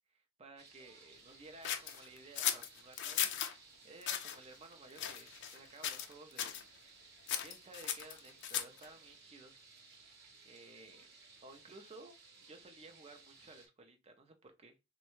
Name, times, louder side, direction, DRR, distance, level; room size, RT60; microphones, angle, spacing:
voice 1, 0.1-7.1 7.4-9.6 10.4-11.1 11.4-12.1 12.4-14.8, right 2 dB, 30° right, 0.6 m, -56 dB
sound 1, 0.6-13.7, right 4 dB, 50° right, 0.9 m, -60 dB
sound 2, 1.6-3.5 4.0-4.4 5.0-5.6 5.8-6.1 6.4-6.6 7.3-8.8, left 9 dB, 55° left, 0.5 m, -37 dB
3.6 x 2.2 x 2.9 m
head